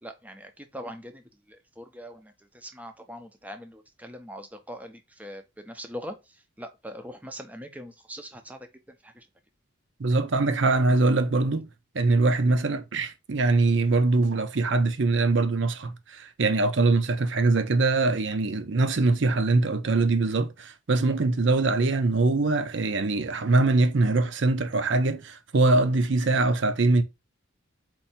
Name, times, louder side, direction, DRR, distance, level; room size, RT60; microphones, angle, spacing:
voice 1, 0.0-9.3, equal, 5° right, 0.5 m, -42 dB
voice 2, 10.0-11.7 11.9-27.0, right 3 dB, 60° right, 0.6 m, -23 dB
4.5 x 2.7 x 4.1 m
head